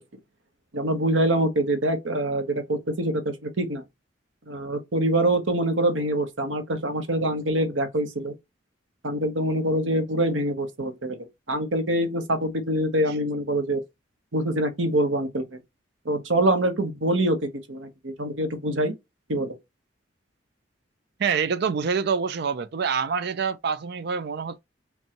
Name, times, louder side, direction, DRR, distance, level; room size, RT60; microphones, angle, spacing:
voice 1, 0.7-3.8 4.5-8.3 9.0-11.2 11.5-13.8 14.3-15.6 16.0-18.9 19.3-19.6, right 1 dB, 85° right, 1.1 m, -25 dB
voice 2, 21.2-24.6, right 6 dB, 60° right, 0.4 m, -26 dB
5.3 x 2.3 x 2.9 m
head